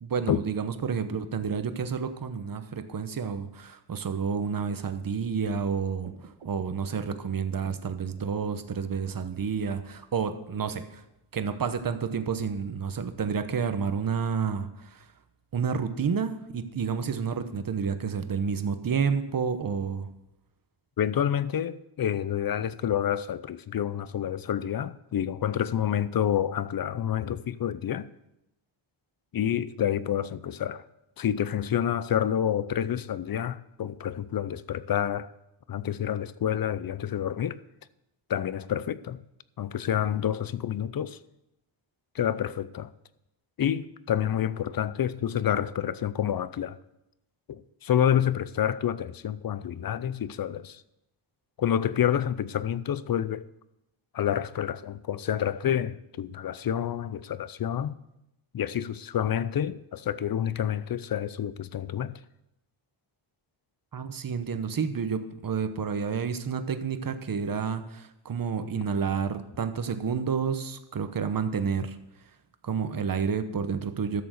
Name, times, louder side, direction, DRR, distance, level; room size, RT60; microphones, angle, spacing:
voice 1, 0.0-6.1 6.4-11.0 11.3-15.0 15.5-20.1 63.9-72.0 72.6-74.2, right 6 dB, 45° right, 1.0 m, -30 dB
sound 1, 6.0-8.9, right 4 dB, 75° right, 1.7 m, -51 dB
voice 2, 21.0-28.1 29.3-30.8 31.2-35.3 35.7-37.6 38.3-39.2 39.6-41.2 42.1-42.9 43.6-46.8 47.5-50.8 51.6-53.5 54.1-57.9 58.5-62.1, left 10 dB, 50° left, 0.6 m, -28 dB
12.5 x 6.9 x 6.5 m
wide cardioid pair, 110°, 47 cm